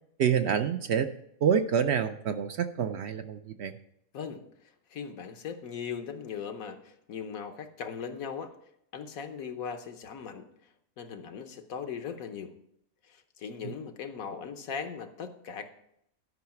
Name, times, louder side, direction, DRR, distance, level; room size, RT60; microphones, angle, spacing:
voice 1, 0.2-1.1 1.4-3.7, right 7 dB, 65° right, 8 dB, 0.7 m, -27 dB
voice 2, 4.1-4.4 4.9-8.5 8.9-10.4 11.0-12.5 13.1-15.7, left 6 dB, 80° left, 7 dB, 1.3 m, -39 dB
11.5 x 5.6 x 5.8 m, 0.75 s
omnidirectional pair, 1.4 m